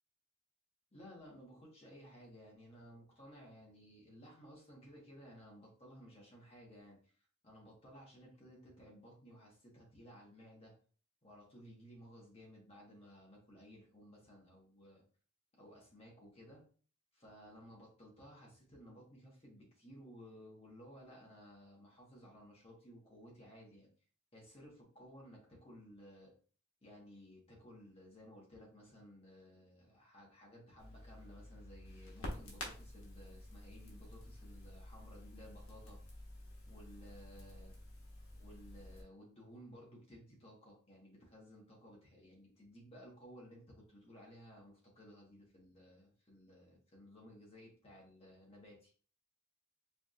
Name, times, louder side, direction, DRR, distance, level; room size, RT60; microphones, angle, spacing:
voice 1, 0.9-7.2 7.4-10.7 11.2-15.0 15.6-16.6 17.1-23.9 24.3-26.3 26.8-36.0 36.7-37.7 38.4-48.9, equal, 30° left, -3 dB, 1.5 m, -57 dB
Crackle, 30.8-39.0, left 1 dB, 90° left, 1.4 m, -50 dB
4.9 x 3.3 x 2.5 m, 0.42 s
head